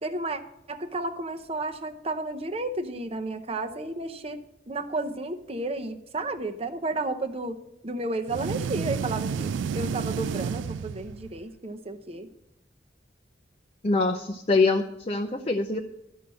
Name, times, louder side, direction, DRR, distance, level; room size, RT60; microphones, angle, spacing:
voice 1, 0.0-0.4 0.7-4.4 4.7-12.3, right 2 dB, 35° right, 7 dB, 0.7 m, -32 dB
sound 1, 8.3-11.4, right 6 dB, 85° right, 0.3 m, -31 dB
voice 2, 13.8-15.8, left 3 dB, 30° left, 5 dB, 0.5 m, -24 dB
12.5 x 5.5 x 7.6 m, 0.87 s
head